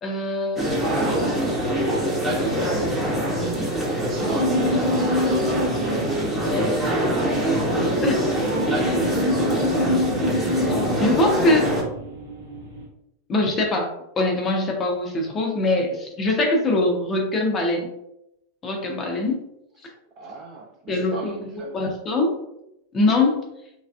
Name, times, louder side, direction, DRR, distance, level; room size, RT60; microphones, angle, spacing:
voice 1, 0.0-0.7 8.0-8.2 10.3-11.7 13.3-13.9 14.2-17.9 18.6-19.4 20.9-22.4 22.9-23.5, left 2 dB, 25° left, 1 dB, 0.6 m, -23 dB
sound 1, 0.6-11.8, right 1 dB, ahead, 0.9 m, -24 dB
voice 2, 0.8-1.4 4.0-6.6 7.1-9.9 19.8-21.8, right 3 dB, 35° right, -1 dB, 0.7 m, -37 dB
sound 2, 4.4-12.8, left 1 dB, 85° right, 0.9 m, -27 dB
3.2 x 2.4 x 2.3 m, 0.82 s
figure-of-eight pair, 90°, 0 cm